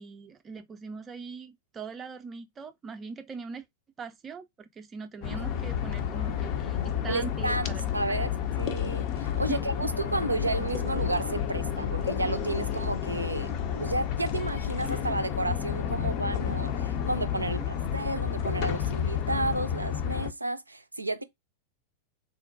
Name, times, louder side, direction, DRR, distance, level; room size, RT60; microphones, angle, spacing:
voice 1, 0.0-3.7 4.0-7.8 8.1-8.3 9.5-9.6 17.5-17.7, right 5 dB, 20° right, 0.5 m, -41 dB
sound 1, 5.2-13.1, left 2 dB, 70° left, 1.6 m, -53 dB
sound 2, 5.2-20.3, left 9 dB, 40° left, 0.5 m, -30 dB
voice 2, 7.1-8.3 8.6-13.5 13.8-21.2, right 2 dB, 85° right, 0.4 m, -32 dB
sound 3, 9.3-9.7 9.9-10.2 10.5-10.9 11.2-11.4 11.8-12.8 13.0-14.0, left 1 dB, 90° left, 0.7 m, -46 dB
3.7 x 2.1 x 2.6 m
figure-of-eight pair, 90°, 0 cm